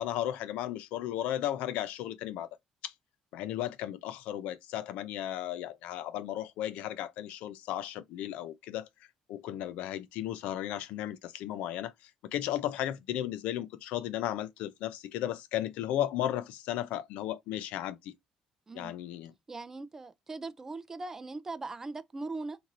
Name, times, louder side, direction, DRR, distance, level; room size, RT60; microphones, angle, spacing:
voice 1, 0.0-2.5 2.8-2.9 3.3-8.9 9.3-11.9 12.3-18.1 18.7-19.3, left 12 dB, 90° left, 0.4 m, -35 dB
voice 2, 19.5-22.6, right 3 dB, 20° right, 0.4 m, -40 dB
2.6 x 2.5 x 2.8 m
cardioid pair, 115°, 2 cm